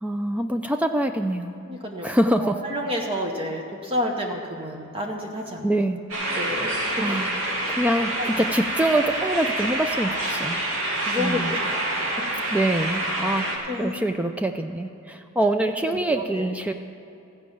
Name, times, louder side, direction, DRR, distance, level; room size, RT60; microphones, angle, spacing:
voice 1, 0.0-1.6 2.0-2.6 5.6-6.0 7.0-7.4 7.7-10.6 11.2-11.5 12.5-16.7, right 1 dB, 5° right, 6 dB, 0.3 m, -25 dB
voice 2, 1.7-5.7 6.4-7.0 8.2-8.4 11.0-11.9 13.7-13.9 15.9-16.5, left 1 dB, 25° right, 1 dB, 0.9 m, -30 dB
sound 1, 6.1-13.6, right 1 dB, 85° right, 1.9 m, -27 dB
15.0 x 5.1 x 8.5 m, 2.7 s
head